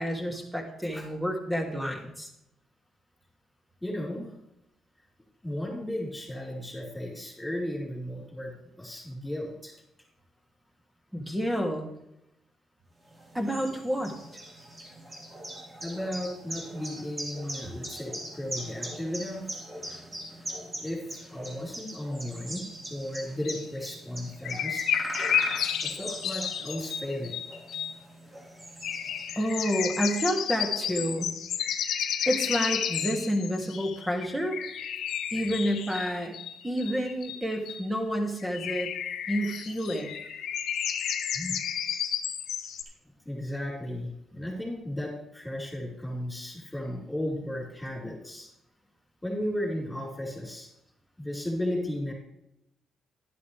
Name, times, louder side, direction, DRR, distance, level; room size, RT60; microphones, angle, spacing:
voice 1, 0.0-2.3 11.1-11.9 13.3-14.2 29.4-31.3 32.3-34.6 35.3-36.4 36.6-38.9 39.3-40.1, equal, 10° right, 1 dB, 2.8 m, -29 dB
voice 2, 3.8-4.3 5.4-9.8 15.8-19.5 20.8-24.8 25.8-27.3 41.3-41.6 43.3-48.5 49.2-50.7 51.2-52.1, left 1 dB, 10° left, -1 dB, 5.1 m, -35 dB
sound 1, 13.1-29.6, right 1 dB, 25° right, 3.4 m, -41 dB
sound 2, 23.4-23.6 24.4-27.9 28.8-37.8 38.4-42.8, left 9 dB, 75° left, 1.1 m, -32 dB
11.5 x 11.5 x 3.5 m, 0.82 s
cardioid pair, 90°, 0 cm